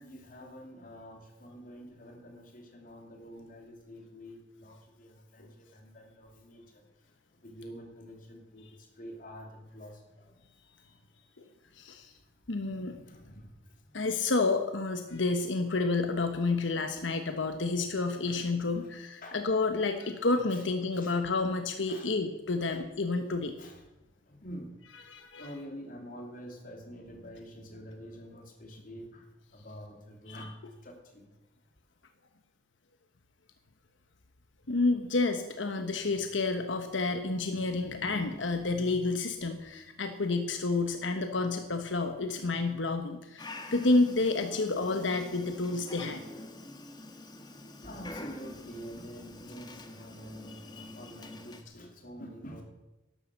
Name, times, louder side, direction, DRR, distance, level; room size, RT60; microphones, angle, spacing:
voice 1, 0.0-6.8 7.4-10.4 12.1-12.3 12.7-14.0 18.2-18.4 18.7-19.4 20.5-20.6 20.9-21.1 21.9-22.1 22.6-22.7 23.6-24.7 25.4-31.3 47.1-52.6, equal, 45° left, 2 dB, 3.0 m, -47 dB
voice 2, 11.8-12.1 12.5-13.0 13.9-23.5 25.1-25.5 34.7-46.2 50.8-50.9, left 3 dB, 90° left, 6 dB, 1.2 m, -30 dB
Dog, 43.4-51.6, left 2 dB, 25° left, 1.2 m, -46 dB
12.0 x 11.5 x 7.2 m, 1.0 s
head